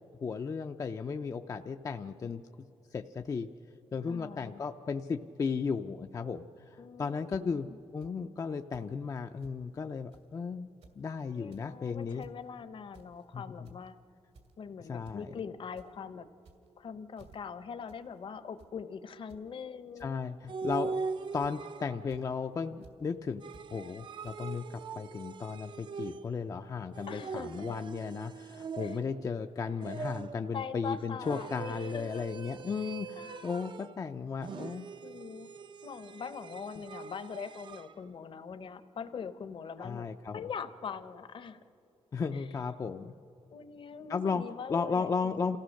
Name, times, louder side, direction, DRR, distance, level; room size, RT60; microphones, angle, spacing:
voice 1, 0.2-2.4 2.9-3.5 3.9-7.7 7.9-10.7 11.0-12.2 13.3-13.4 14.9-15.3 20.0-21.0 21.3-23.4 23.7-34.9 39.8-40.4 42.1-43.1 44.1-44.4 44.7-45.6, left 5 dB, 30° left, 6 dB, 0.4 m, -35 dB
voice 2, 4.0-4.6 6.8-7.8 11.3-14.0 14.6-16.3 16.8-20.2 27.1-27.8 28.8-29.0 29.9-30.0 30.5-32.3 33.2-33.7 35.0-35.5 35.8-41.6 42.3-42.5 43.5-45.6, left 6 dB, 50° left, 12 dB, 0.8 m, -43 dB
sound 1, 7.3-7.4 8.0-8.1 8.7-8.9 9.1-9.2 9.4-9.6 10.1-10.3 10.7-11.0 11.3-11.7 12.1-12.4 12.9-13.2 13.6-13.9 14.3-14.6 15.0-15.2 15.5-15.9 16.4-16.8 17.1-17.4 17.9-18.0 18.3-18.7 19.3-19.4 20.0-20.1 20.7-21.0 21.4-21.7 22.1-22.2 22.8-22.9 23.5-23.7 24.2-24.3, right 3 dB, 80° right, 2.2 m, -57 dB
sound 2, 20.5-22.2 23.4-26.5 26.9-29.3 29.8-30.5 31.2-34.0 34.4-37.9, right 5 dB, 45° right, 0.5 m, -42 dB
27.5 x 15.5 x 6.4 m, 2.9 s
wide cardioid pair, 175°, 11 cm